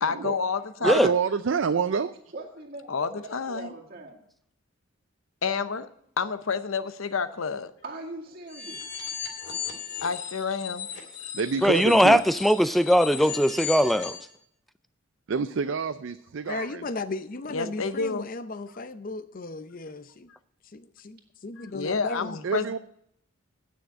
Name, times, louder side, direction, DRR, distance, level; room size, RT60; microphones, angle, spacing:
voice 1, 0.0-1.1 2.9-3.7 5.4-5.9 6.2-7.7 10.0-10.9 17.5-18.3 21.7-22.8, left 5 dB, 75° left, 0.7 m, -29 dB
voice 2, 0.8-2.1 11.3-12.2 15.3-16.8 22.4-22.8, right 5 dB, 60° right, 0.4 m, -27 dB
voice 3, 2.3-4.2 7.8-8.9 17.5-17.6, right 2 dB, 45° right, 2.2 m, -41 dB
sound 1, 8.5-14.3, left 7 dB, 55° left, 2.5 m, -36 dB
voice 4, 11.6-14.2, equal, ahead, 0.4 m, -20 dB
voice 5, 16.5-20.3 20.6-22.5, left 3 dB, 40° left, 0.6 m, -36 dB
9.6 x 6.4 x 8.7 m
head